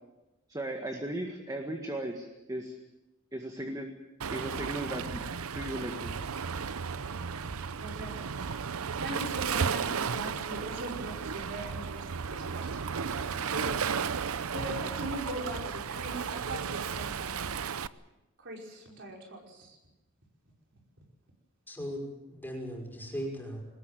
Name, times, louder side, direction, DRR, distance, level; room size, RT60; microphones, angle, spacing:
voice 1, 0.5-2.8 3.3-3.9 4.3-6.3, right 1 dB, 15° right, 3 dB, 1.9 m, -37 dB
Waves surf, 4.2-17.9, right 6 dB, 80° right, 0.7 m, -34 dB
voice 2, 7.8-8.2 9.0-14.2 14.5-17.6 18.4-19.8, right 1 dB, 60° right, 0 dB, 5.4 m, -40 dB
voice 3, 21.7-23.6, equal, 10° left, 0 dB, 5.6 m, -38 dB
22.5 x 19.5 x 7.6 m, 0.98 s
head